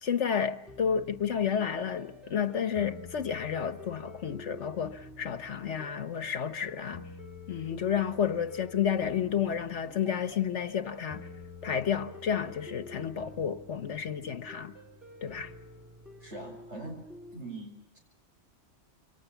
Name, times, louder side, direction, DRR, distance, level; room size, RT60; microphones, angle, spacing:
voice 1, 0.0-7.1 7.5-11.3 11.6-14.7 15.2-15.5, left 8 dB, 75° left, 1.5 m, -31 dB
sound 1, 0.7-17.4, left 2 dB, ahead, 4.5 m, -48 dB
voice 2, 16.2-17.0 17.3-18.0, right 2 dB, 75° right, 7.9 m, -42 dB
28.0 x 24.5 x 7.2 m
omnidirectional pair, 1.2 m